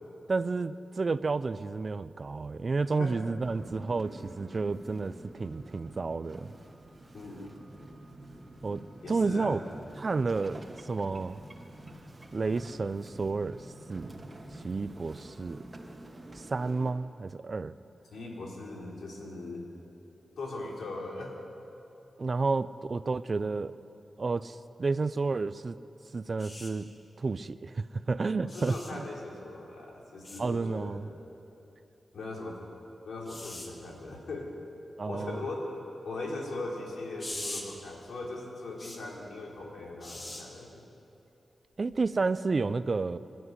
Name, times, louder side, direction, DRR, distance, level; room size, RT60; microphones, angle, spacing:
voice 1, 0.3-6.5 8.6-8.8 9.1-9.6 10.0-11.4 12.3-13.6 13.9-14.2 14.6-15.6 16.5-17.7 22.2-23.7 24.2-25.8 26.1-26.9 27.2-29.0 30.4-31.1 35.0-35.4 41.8-43.2, right 4 dB, 45° right, 14 dB, 0.6 m, -31 dB
sound 1, 3.4-16.9, right 1 dB, 25° right, 2.3 m, -48 dB
voice 2, 7.1-7.5 9.0-9.6 18.1-19.6 20.4-21.4 28.4-31.0 32.1-32.7 33.1-34.5 35.1-40.8, left 2 dB, 90° left, -2 dB, 4.1 m, -39 dB
sound 2, 26.4-26.7 28.5-28.9 30.2-30.4 33.3-33.7 37.2-37.6 38.8-39.0 40.0-40.4 41.9-42.1, left 1 dB, 35° left, 2.8 m, -41 dB
26.0 x 12.5 x 9.7 m, 2.9 s
wide cardioid pair, 100°, 0 cm